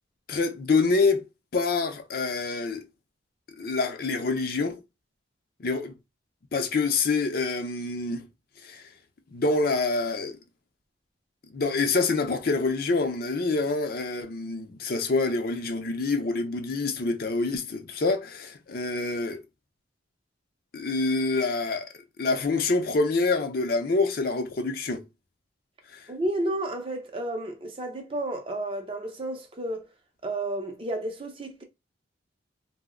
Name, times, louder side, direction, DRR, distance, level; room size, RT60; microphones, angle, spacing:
voice 1, 0.3-1.2 1.5-2.8 3.6-4.8 5.6-5.9 6.5-8.3 8.6-8.8 9.3-10.4 11.5-19.4 20.7-21.9 22.2-25.0 25.9-26.0, left 3 dB, 50° left, 0.5 m, -26 dB
voice 2, 26.1-29.9 30.2-31.6, right 1 dB, 30° right, 0.5 m, -31 dB
2.6 x 2.0 x 3.6 m
head